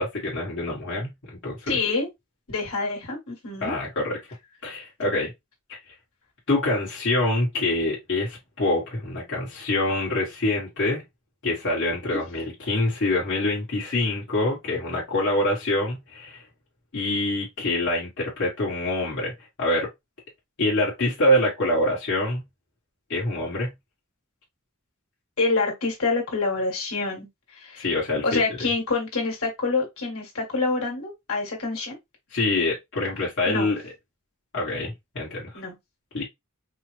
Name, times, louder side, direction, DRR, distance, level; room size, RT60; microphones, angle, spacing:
voice 1, 0.0-1.7 3.6-4.2 4.6-5.3 5.7-5.8 6.5-11.0 11.4-16.4 16.9-19.9 20.6-22.4 23.1-23.7 27.8-28.4 32.3-33.8 34.5-35.5 36.1-36.2, left 1 dB, 60° left, 1.4 m, -25 dB
voice 2, 1.7-2.1 2.5-3.8 12.1-12.2 25.4-27.9 28.2-32.0 33.4-33.7 35.5-35.7, left 3 dB, 75° left, 1.6 m, -27 dB
4.7 x 2.0 x 3.2 m
head